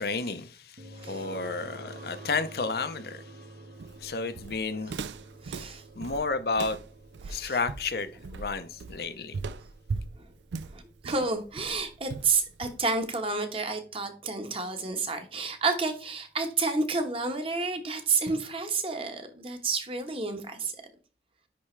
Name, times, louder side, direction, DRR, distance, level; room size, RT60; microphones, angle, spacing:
voice 1, 0.0-3.3 4.0-5.0 6.0-6.8 7.3-9.4, left 4 dB, 60° left, 0.7 m, -32 dB
sound 1, 0.8-15.7, right 1 dB, 55° right, 0.9 m, -50 dB
voice 2, 1.0-1.3 4.7-5.0 5.4-5.8 7.2-7.6 10.2-10.3 10.7-20.8, right 4 dB, 30° right, 1.2 m, -30 dB
Walk footsteps, 3.8-13.1, right 4 dB, 90° right, 0.4 m, -39 dB
10.0 x 3.5 x 3.2 m
head